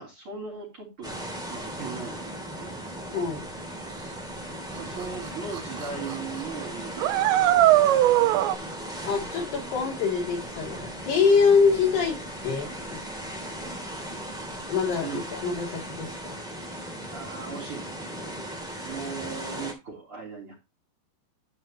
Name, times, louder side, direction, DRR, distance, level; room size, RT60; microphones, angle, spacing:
voice 1, 0.0-2.8 4.8-7.8 15.0-15.2 17.1-20.5, right 5 dB, 30° right, -1 dB, 3.8 m, -39 dB
sound 1, 1.0-19.7, right 1 dB, ahead, 1.7 m, -37 dB
voice 2, 3.1-3.4 9.0-12.2 12.4-13.0 14.7-16.1, left 5 dB, 65° left, -1 dB, 4.9 m, -24 dB
sound 2, 5.0-5.1 5.6-5.8 6.1-6.2 7.0-8.6, right 14 dB, 90° right, 2.9 m, -20 dB
11.5 x 5.5 x 3.0 m, 0.24 s
omnidirectional pair, 5.0 m